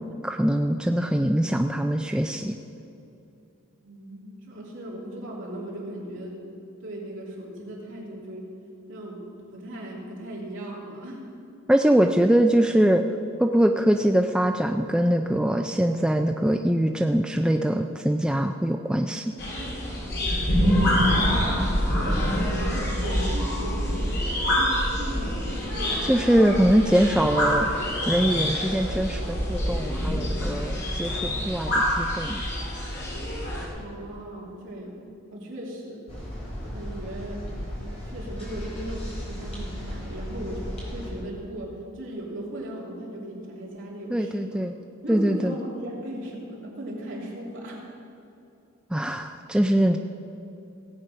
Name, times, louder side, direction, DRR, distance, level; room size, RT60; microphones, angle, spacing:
voice 1, 0.0-2.6 11.7-13.0 13.4-19.3 26.0-27.7 28.1-32.4 44.1-44.7 45.1-45.5 48.9-50.0, right 1 dB, 5° right, 4 dB, 0.3 m, -23 dB
voice 2, 3.8-6.4 6.8-8.5 8.9-9.2 9.5-11.2 20.8-26.0 33.7-36.0 36.6-37.4 38.1-40.7 40.9-44.6 45.0-47.9, right 1 dB, 60° right, -4 dB, 3.0 m, -37 dB
sound 1, 19.4-33.7, equal, 50° left, 2.5 m, -26 dB
sound 2, 36.1-41.1, equal, 30° left, 3.6 m, -35 dB
17.0 x 8.3 x 5.5 m, 2.7 s
head